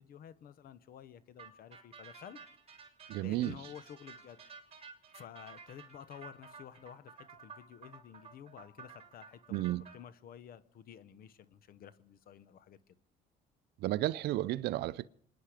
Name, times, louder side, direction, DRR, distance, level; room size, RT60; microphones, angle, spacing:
voice 1, 0.0-2.4 3.2-4.4 5.1-12.8, left 9 dB, 60° left, 1.0 m, -51 dB
sound 1, 1.4-10.0, right 5 dB, 35° right, 3.0 m, -53 dB
voice 2, 3.1-3.5 9.5-9.8 13.8-15.1, right 15 dB, 75° right, 0.5 m, -32 dB
26.5 x 10.0 x 5.0 m
cardioid pair, 110°, 17 cm